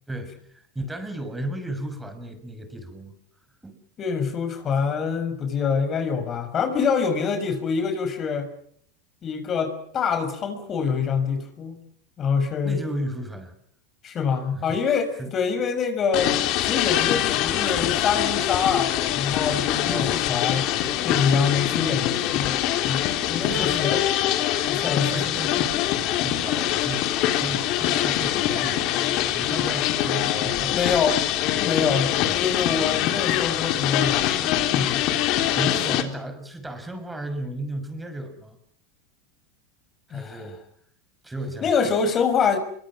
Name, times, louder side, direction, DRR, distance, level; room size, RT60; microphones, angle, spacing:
voice 1, 0.1-3.1 3.6-3.8 12.6-13.5 14.5-14.8 15.2-15.3 19.9-20.2 23.4-24.1 24.7-25.9 26.2-27.1 27.4-28.9 29.3-31.0 32.1-32.3 35.5-38.6 40.1-40.6 41.2-41.7, right 1 dB, 10° right, 9 dB, 6.1 m, -34 dB
voice 2, 4.0-8.5 9.2-11.8 12.2-12.8 14.0-16.3 16.6-20.6 21.0-22.6 22.8-24.0 24.6-25.3 30.7-31.2 31.6-35.0 40.1-40.4 41.6-42.6, left 6 dB, 35° left, 8 dB, 6.1 m, -25 dB
sound 1, 16.1-36.0, left 12 dB, 55° left, 3.4 m, -24 dB
28.0 x 24.5 x 6.3 m, 0.65 s
hypercardioid pair, 90°, 0 cm